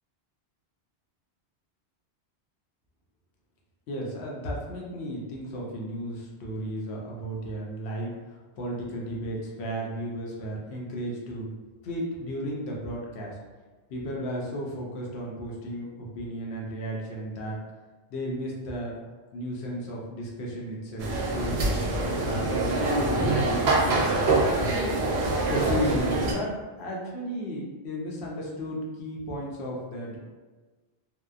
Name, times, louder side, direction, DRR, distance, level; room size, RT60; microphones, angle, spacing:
voice 1, 3.9-11.5 11.8-13.4 13.9-17.6 18.1-19.0 19.3-21.8 22.2-24.9 25.5-30.2, equal, 75° left, -3 dB, 0.8 m, -34 dB
sound 1, 21.0-26.3, right 2 dB, 75° right, 0.8 m, -25 dB
2.7 x 2.0 x 2.3 m, 1.3 s
omnidirectional pair, 1.1 m